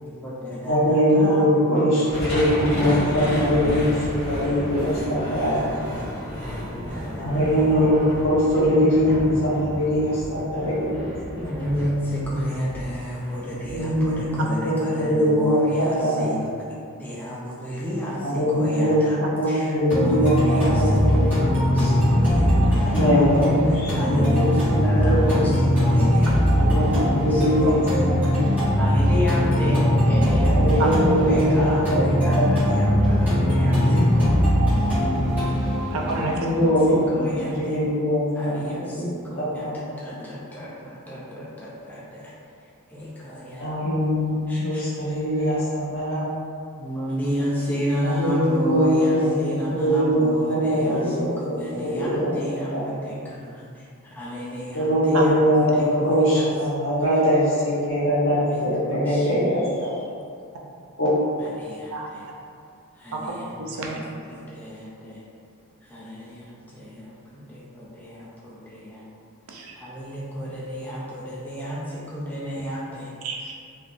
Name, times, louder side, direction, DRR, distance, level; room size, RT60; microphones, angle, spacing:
voice 1, 0.0-2.0 2.9-3.6 4.8-4.9 5.5-6.1 6.5-7.9 11.4-16.5 17.0-19.2 19.5-27.0 27.3-27.9 28.2-28.5 28.8-31.9 32.2-34.3 36.4-37.8 38.3-42.3 42.9-43.7 44.5-44.8 46.8-56.5 57.0-57.1 58.5-59.3 59.9-60.0 61.4-62.2 62.9-63.5 63.7-63.9 64.3-65.2 65.8-69.1 69.8-73.1, equal, 10° left, -8 dB, 0.3 m, -32 dB
voice 2, 0.7-5.6 7.2-11.4 13.7-14.4 14.6-16.3 18.2-21.4 22.9-25.5 26.5-28.6 30.6-32.5 33.9-34.0 36.2-39.8 43.6-46.2 48.0-49.3 49.7-52.3 52.7-52.8 54.7-59.9 61.0-61.1, equal, 60° left, -9 dB, 1.1 m, -22 dB
sound 1, 2.1-14.5, equal, 30° left, 1.0 m, -32 dB
sound 2, 19.9-37.9, equal, 10° right, 1.1 m, -21 dB
voice 3, 35.9-36.3 55.1-55.3 61.9-62.1 63.1-63.3 63.6-64.0 69.5-69.8 73.2-73.5, right 3 dB, 75° right, -1 dB, 0.5 m, -29 dB
3.4 x 2.5 x 2.4 m, 2.4 s
head